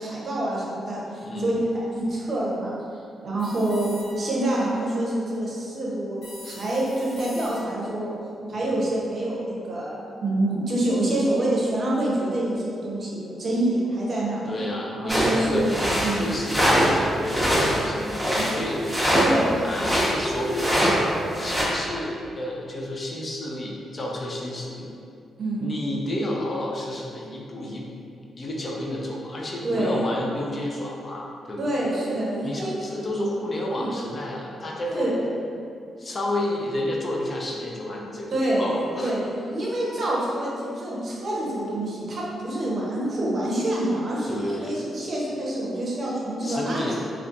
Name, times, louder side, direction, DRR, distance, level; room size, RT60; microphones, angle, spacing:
voice 1, 0.0-2.8 3.2-8.1 8.5-14.4 14.9-16.3 18.4-18.5 19.1-19.7 25.4-25.7 29.6-30.0 31.6-32.7 33.7-34.0 34.9-35.2 38.3-47.0, right 1 dB, 50° right, -5 dB, 0.6 m, -26 dB
sound 1, 3.4-4.4 6.2-7.9, equal, 80° left, 1.0 m, -43 dB
voice 2, 14.5-15.7 16.1-18.8 19.5-21.0 21.4-24.9 25.6-27.8 28.4-31.7 32.4-35.1 36.0-39.2 44.3-44.8 46.4-47.0, left 1 dB, 40° left, -2 dB, 0.4 m, -30 dB
sound 2, 15.1-17.0 17.2-20.1 20.5-20.9 21.3-21.6, equal, 5° right, 0.8 m, -23 dB
2.5 x 2.3 x 2.4 m, 2.5 s
hypercardioid pair, 40°, 0 cm